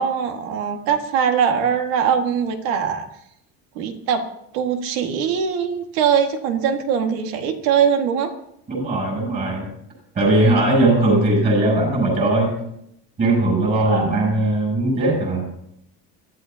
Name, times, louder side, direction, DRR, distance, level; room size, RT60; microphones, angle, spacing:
voice 1, 0.0-3.1 3.8-4.3 4.5-8.3 10.7-11.2 13.8-14.4, right 7 dB, 80° right, 5 dB, 2.0 m, -22 dB
voice 2, 8.7-9.7 10.1-12.5 13.2-15.5, right 2 dB, 25° right, -3 dB, 7.6 m, -19 dB
23.5 x 15.5 x 2.9 m, 0.77 s
cardioid pair, 175°, 38 cm